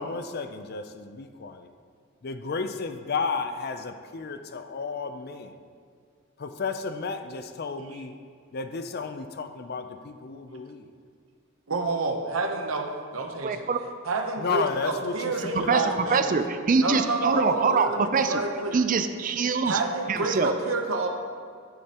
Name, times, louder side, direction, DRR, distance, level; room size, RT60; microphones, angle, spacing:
voice 1, 0.0-1.7 2.2-5.6 6.4-8.1 8.5-10.9 14.4-15.9, left 4 dB, 50° left, 9 dB, 0.5 m, -32 dB
voice 2, 11.7-13.7 14.0-16.4 16.8-18.8 19.6-21.1, right 3 dB, 85° right, 4 dB, 0.9 m, -29 dB
voice 3, 13.4-13.8 15.5-15.8 16.1-18.4 18.7-19.8 20.1-20.5, right 4 dB, 40° right, 8 dB, 0.4 m, -24 dB
11.5 x 8.5 x 2.9 m, 2.1 s
head